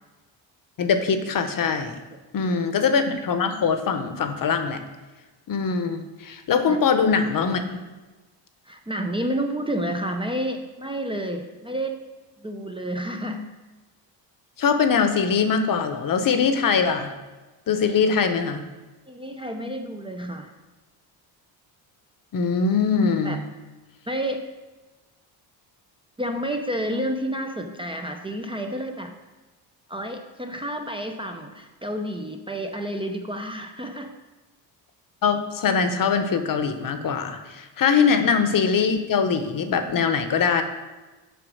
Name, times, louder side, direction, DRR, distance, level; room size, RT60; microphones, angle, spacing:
voice 1, 0.8-2.0 2.3-4.8 5.5-7.6 14.6-17.1 17.7-18.6 22.3-23.4 35.2-40.6, left 5 dB, 50° left, 8 dB, 0.9 m, -22 dB
voice 2, 8.7-12.0 12.4-13.4 19.1-20.5 23.2-23.4 24.1-24.5 26.2-29.1 29.9-34.1, right 1 dB, 10° right, 4 dB, 0.6 m, -30 dB
7.9 x 4.9 x 6.3 m, 1.2 s
cardioid pair, 120°, 44 cm